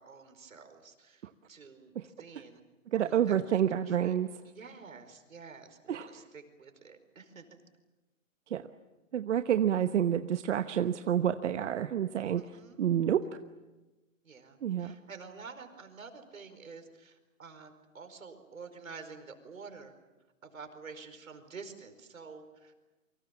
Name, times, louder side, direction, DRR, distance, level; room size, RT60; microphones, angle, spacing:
voice 1, 0.0-2.6 2.9-3.6 3.9-4.2 4.4-7.6 12.4-12.8 14.2-19.9 20.4-22.8, right 5 dB, 80° right, 8 dB, 4.9 m, -49 dB
voice 2, 2.9-4.3 5.9-6.1 8.5-8.6 9.1-12.4 12.8-13.2 14.6-14.9, right 10 dB, 60° right, 9 dB, 1.1 m, -28 dB
29.0 x 25.0 x 7.3 m, 1.1 s
hypercardioid pair, 140°, 40 cm